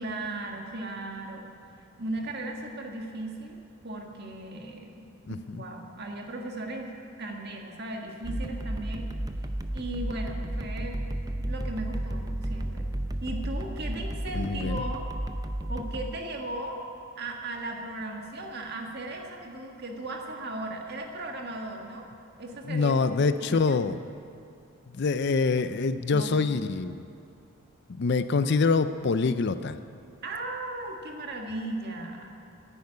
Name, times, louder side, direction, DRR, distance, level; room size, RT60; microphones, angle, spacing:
voice 1, 0.0-1.4 2.0-3.6 3.8-6.9 7.2-9.1 9.7-11.0 11.4-12.9 13.2-15.1 15.7-16.8 17.2-22.1 22.4-23.0 23.4-23.7 26.1-26.6 30.2-32.3, right 2 dB, 50° right, 2 dB, 1.6 m, -37 dB
voice 2, 5.3-5.6 14.3-14.8 22.7-24.0 24.9-27.0 28.0-29.8, left 4 dB, 50° left, 12 dB, 0.5 m, -25 dB
sound 1, 8.2-16.0, right 1 dB, 15° right, 0.5 m, -33 dB
10.5 x 10.0 x 9.6 m, 2.5 s
head